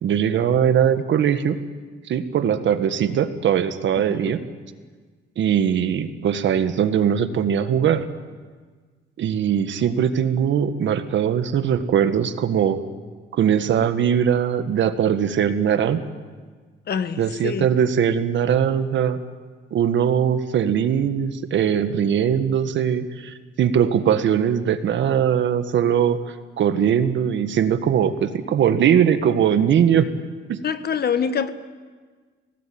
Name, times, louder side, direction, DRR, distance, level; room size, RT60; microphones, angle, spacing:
voice 1, 0.0-1.6 2.1-4.4 5.4-8.1 9.2-12.8 13.3-16.0 17.2-19.2 19.7-26.2 26.6-30.1 30.5-30.6, right 8 dB, 70° right, 10 dB, 1.7 m, -20 dB
voice 2, 16.9-17.7 30.6-31.5, left 7 dB, 55° left, 11 dB, 1.5 m, -25 dB
25.0 x 18.5 x 8.8 m, 1.5 s
cardioid pair, 90°, 20 cm